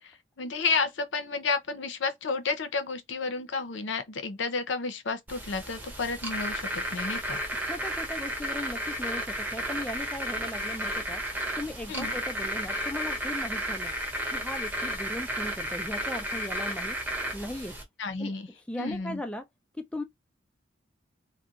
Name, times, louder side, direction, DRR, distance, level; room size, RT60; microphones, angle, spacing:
voice 1, 0.0-7.4 11.9-12.1 18.0-18.5 18.8-19.2, left 4 dB, 75° left, 0.6 m, -31 dB
sound 1, 5.3-17.8, equal, 10° right, 0.8 m, -33 dB
voice 2, 7.7-11.2 11.6-13.9 14.3-17.0 17.3-17.8 18.2-18.3 18.7-19.5 19.7-20.0, left 1 dB, 5° left, 0.3 m, -37 dB
2.4 x 2.1 x 3.9 m
head